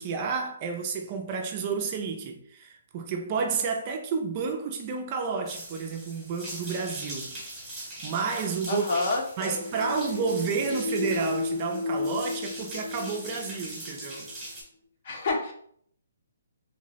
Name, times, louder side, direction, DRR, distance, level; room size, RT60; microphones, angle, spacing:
voice 1, 0.0-7.4 8.0-8.9 9.4-14.3, right 5 dB, 30° right, 0.3 m, -30 dB
sound 1, 5.4-14.6, right 1 dB, 5° right, 0.9 m, -41 dB
voice 2, 8.7-9.6 15.0-15.5, left 3 dB, 45° left, 0.6 m, -28 dB
sound 2, 9.6-14.1, left 3 dB, 80° left, 1.2 m, -33 dB
3.0 x 2.0 x 2.8 m
hypercardioid pair, 160°, 0 cm